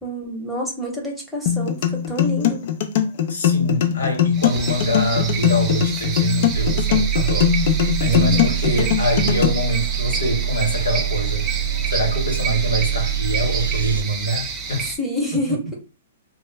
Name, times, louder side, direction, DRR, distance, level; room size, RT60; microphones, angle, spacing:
voice 1, 0.0-2.6 8.0-8.6 15.0-15.6, equal, ahead, 0.9 m, -27 dB
sound 1, 1.5-9.5, left 9 dB, 55° left, 0.5 m, -20 dB
voice 2, 3.3-7.5 8.0-11.4 11.9-14.9, right 1 dB, 90° left, 1.0 m, -24 dB
sound 2, 4.3-15.0, right 5 dB, 25° right, 0.5 m, -29 dB
sound 3, 6.5-14.0, right 9 dB, 90° right, 0.3 m, -25 dB
2.1 x 2.0 x 3.3 m
hypercardioid pair, 135°, 0 cm